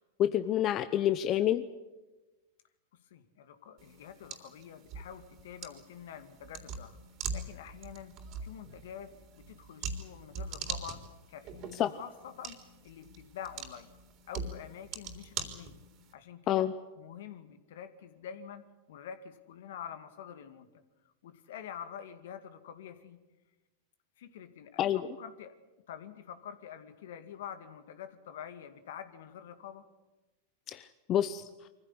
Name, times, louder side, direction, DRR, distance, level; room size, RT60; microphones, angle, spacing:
voice 1, 0.2-1.6 11.7-11.9 16.5-16.7 24.8-25.1 30.7-31.5, left 11 dB, 35° left, 11 dB, 0.9 m, -28 dB
voice 2, 3.0-7.0 7.3-11.0 11.3-11.6 11.9-13.9 14.3-15.8 16.1-16.7 17.0-20.7 21.2-23.2 24.2-25.5 25.9-29.9, left 9 dB, 70° left, 10 dB, 2.1 m, -47 dB
sound 1, 3.8-16.1, right 5 dB, 45° right, 3.6 m, -43 dB
24.0 x 15.5 x 9.8 m, 1.2 s
hypercardioid pair, 100°, 0 cm